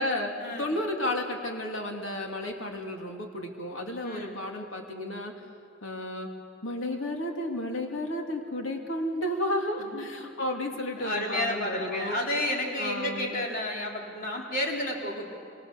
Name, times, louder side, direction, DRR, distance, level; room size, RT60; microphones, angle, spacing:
voice 1, 0.0-5.3 5.8-6.3 6.6-12.2 12.8-13.5, left 1 dB, 70° left, 2 dB, 2.8 m, -32 dB
voice 2, 4.0-4.4 9.8-10.1 11.0-15.2, left 1 dB, 45° left, -1 dB, 4.1 m, -31 dB
27.5 x 24.5 x 6.8 m, 2.4 s
head